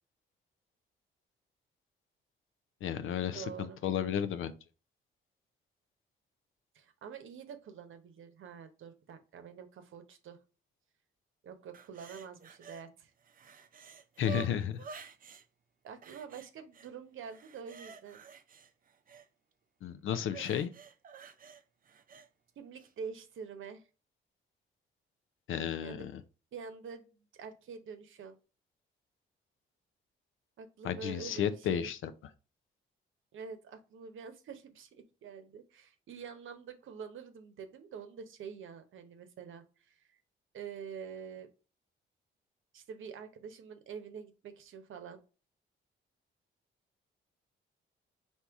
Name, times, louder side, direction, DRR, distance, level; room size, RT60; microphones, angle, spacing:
voice 1, 2.8-4.5 14.2-14.8 19.8-20.7 25.5-26.2 30.8-32.1, left 9 dB, 75° left, 0.6 m, -33 dB
voice 2, 3.3-3.8 6.7-10.4 11.4-13.1 15.8-18.2 22.6-23.8 25.8-26.1 26.5-28.4 30.6-31.9 33.3-40.2 40.5-41.5 42.7-45.2, right 6 dB, 70° right, 0.8 m, -46 dB
sound 1, 11.7-12.8 13.2-15.4 16.0-16.9 17.2-19.3 20.3-22.3 22.8-22.9, right 6 dB, 40° right, 0.5 m, -49 dB
4.6 x 2.8 x 3.5 m
cardioid pair, 75°, 21 cm